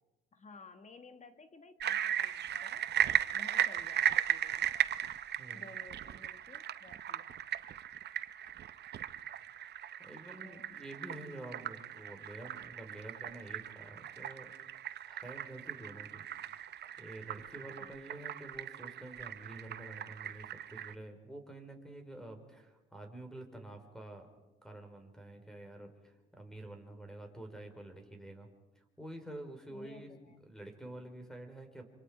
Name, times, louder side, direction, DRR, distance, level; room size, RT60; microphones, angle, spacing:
voice 1, 0.3-2.9 3.3-4.7 5.5-7.8 10.4-10.8 17.8-18.0 29.7-30.4, left 3 dB, 35° left, 9 dB, 1.4 m, -55 dB
sound 1, 1.8-20.9, right 10 dB, 55° right, 0.7 m, -37 dB
voice 2, 9.6-14.5 15.0-16.6 17.0-24.3 24.6-28.5 28.8-31.8, right 1 dB, 5° left, 5 dB, 4.1 m, -49 dB
26.5 x 25.0 x 4.9 m, 1.1 s
cardioid pair, 90°, 20 cm